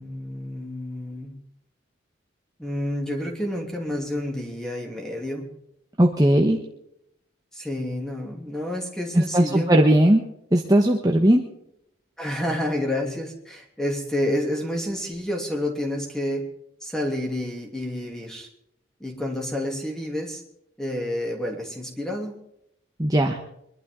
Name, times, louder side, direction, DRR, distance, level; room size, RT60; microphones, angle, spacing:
voice 1, 0.0-1.3 2.6-5.5 7.5-9.7 12.2-16.5 16.8-18.5 19.0-20.4 20.8-22.4, left 1 dB, 5° left, 0 dB, 2.9 m, -29 dB
voice 2, 6.0-6.6 9.3-10.2 10.5-11.4 23.0-23.4, right 1 dB, 20° right, 1 dB, 1.2 m, -18 dB
24.0 x 12.0 x 3.9 m, 0.76 s
head